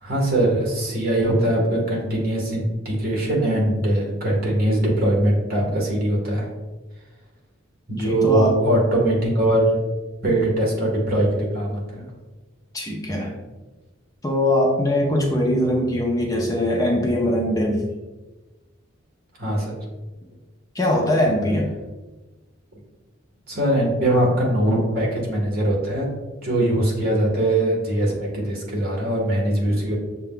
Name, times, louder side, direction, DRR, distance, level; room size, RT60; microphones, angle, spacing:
voice 1, 0.0-6.5 7.9-9.8 10.2-12.0 19.4-19.7 23.5-26.1 26.4-30.0, right 1 dB, 45° right, -2 dB, 1.2 m, -21 dB
voice 2, 7.9-8.6 12.7-13.3 14.2-17.8 20.7-21.7, left 1 dB, 15° left, -1 dB, 0.5 m, -21 dB
6.5 x 2.2 x 3.7 m, 1.2 s
head